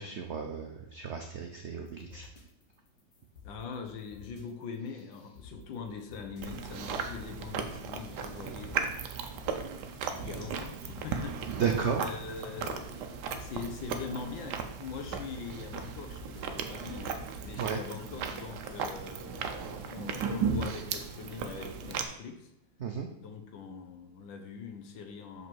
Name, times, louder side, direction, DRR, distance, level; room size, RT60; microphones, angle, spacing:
voice 1, 0.0-2.3 11.6-12.1 17.6-17.8 22.8-23.1, right 6 dB, 85° right, 3 dB, 0.6 m, -33 dB
sound 1, 1.8-20.1, left 2 dB, 65° left, 2.1 m, -51 dB
voice 2, 3.4-8.8 10.2-11.6 12.0-22.5 23.2-25.5, left 5 dB, 85° left, 6 dB, 1.6 m, -42 dB
Chewing mastication, 6.4-22.0, right 6 dB, 70° right, 1.2 m, -36 dB
6.2 x 5.4 x 4.5 m, 0.82 s
omnidirectional pair, 2.0 m